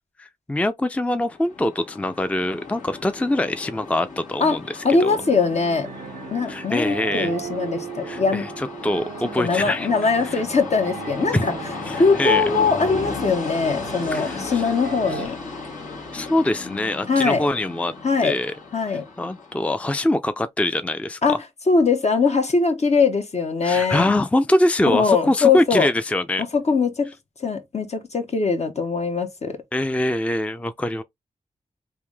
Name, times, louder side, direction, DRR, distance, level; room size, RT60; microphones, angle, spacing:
voice 1, 0.2-5.2 6.5-7.3 8.0-9.9 10.2-10.4 11.3-11.5 11.9-12.4 14.1-14.6 15.1-15.2 16.1-17.9 18.2-18.5 18.9-21.4 23.6-26.4 29.7-31.0, left 1 dB, 10° left, 0.4 m, -24 dB
Train, 1.2-19.8, left 4 dB, 80° left, 1.7 m, -35 dB
voice 2, 4.8-5.9 6.3-8.5 9.4-11.5 12.0-15.4 17.1-17.5 18.0-18.3 18.7-19.1 21.2-21.4 21.7-24.2 24.9-25.9 26.5-27.1 27.4-29.6, left 4 dB, 55° left, 1.0 m, -21 dB
sound 1, 5.2-15.3, right 7 dB, 75° right, 0.4 m, -37 dB
3.5 x 2.7 x 3.3 m
cardioid pair, 50°, 13 cm